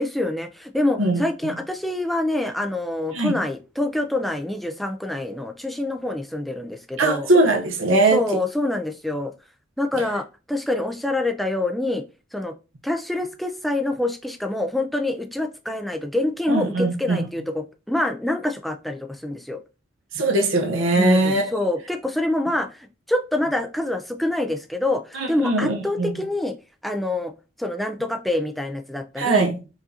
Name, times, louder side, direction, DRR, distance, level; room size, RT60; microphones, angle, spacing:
voice 1, 0.0-7.3 8.1-9.3 9.8-12.0 12.3-12.5 12.8-19.6 21.0-26.6 26.8-27.3 27.6-29.5, left 1 dB, ahead, 0.3 m, -26 dB
voice 2, 7.0-8.2 16.5-17.2 20.1-21.5 25.2-26.1 29.2-29.6, right 2 dB, 85° right, 0.8 m, -20 dB
4.8 x 2.5 x 2.7 m
head